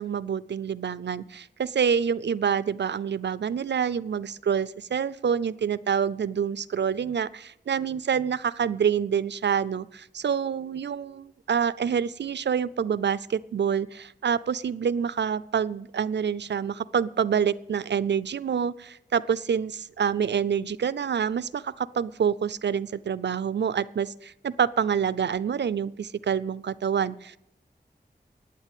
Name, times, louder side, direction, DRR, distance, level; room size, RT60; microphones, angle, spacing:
voice 1, 0.0-27.4, right 7 dB, 85° right, 17 dB, 0.5 m, -27 dB
11.5 x 8.9 x 8.4 m, 0.80 s
wide cardioid pair, 70°, 18 cm